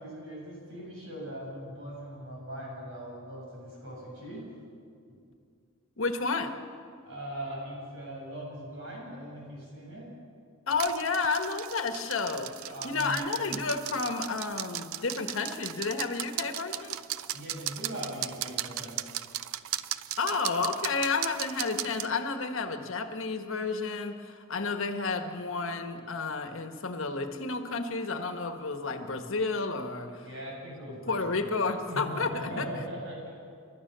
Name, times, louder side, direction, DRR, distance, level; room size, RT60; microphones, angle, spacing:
voice 1, 0.0-4.4 7.1-10.1 12.7-13.6 17.3-19.0 30.2-31.5 31.9-33.3, equal, 65° right, -2 dB, 7.1 m, -40 dB
voice 2, 6.0-6.5 10.7-12.5 12.8-17.0 20.2-30.3 31.1-32.7, left 4 dB, 65° left, 7 dB, 1.4 m, -31 dB
sound 1, 10.7-22.1, right 13 dB, 80° right, 0.6 m, -37 dB
29.0 x 13.0 x 6.9 m, 2.3 s
head